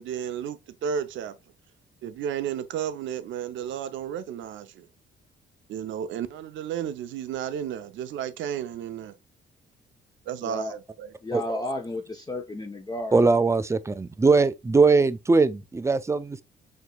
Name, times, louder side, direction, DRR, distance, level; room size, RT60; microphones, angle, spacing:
voice 1, 0.0-1.4 2.0-4.9 5.7-9.1 10.3-11.1, right 9 dB, 75° right, 0.5 m, -33 dB
voice 2, 10.4-10.7 11.2-13.2, left 1 dB, 20° left, 0.7 m, -33 dB
voice 3, 13.1-16.4, right 4 dB, 15° right, 0.4 m, -21 dB
6.3 x 2.8 x 2.2 m
cardioid pair, 90°, 20 cm